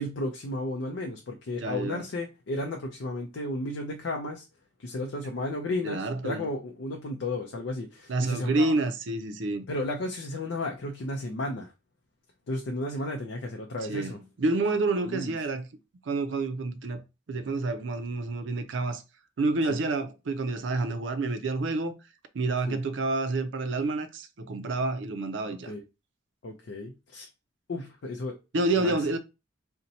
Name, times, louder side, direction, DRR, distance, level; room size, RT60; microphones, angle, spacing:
voice 1, 0.0-4.4 4.8-8.7 9.7-11.7 12.5-14.2 15.1-15.3 19.7-19.8 22.7-22.8 25.7-25.8 26.4-27.3 27.7-28.4 28.8-29.0, left 2 dB, 75° left, 0.5 m, -33 dB
voice 2, 1.5-2.1 5.8-6.4 8.1-9.6 13.9-15.7 16.1-17.0 17.3-19.0 19.4-22.0 22.3-25.7 28.5-29.2, right 3 dB, 75° right, 0.5 m, -28 dB
2.7 x 2.1 x 4.0 m
head